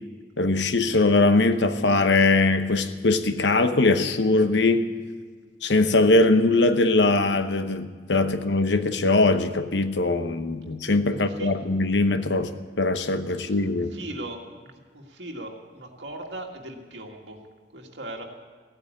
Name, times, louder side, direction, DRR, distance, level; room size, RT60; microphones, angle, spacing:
voice 1, 0.4-4.9 5.6-12.5 12.8-13.9, left 2 dB, 80° left, 9 dB, 0.9 m, -21 dB
voice 2, 11.1-11.7 13.3-13.6 13.9-17.4 17.7-18.2, right 1 dB, 85° right, 1 dB, 2.0 m, -39 dB
16.0 x 9.0 x 8.4 m, 1.5 s
head